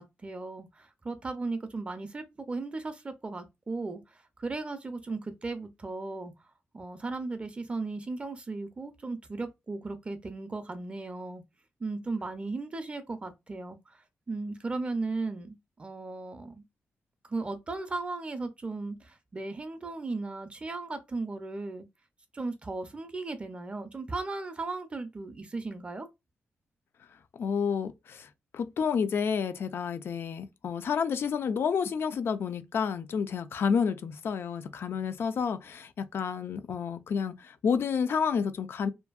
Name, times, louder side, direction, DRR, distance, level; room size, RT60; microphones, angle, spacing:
voice 1, 0.0-6.3 6.7-11.4 11.8-14.0 14.3-16.6 17.2-21.9 22.3-26.1, right 3 dB, 25° right, 0.4 m, -36 dB
voice 2, 27.3-38.9, left 6 dB, 60° left, 0.3 m, -30 dB
2.6 x 2.5 x 2.2 m
wide cardioid pair, 120°, 4 cm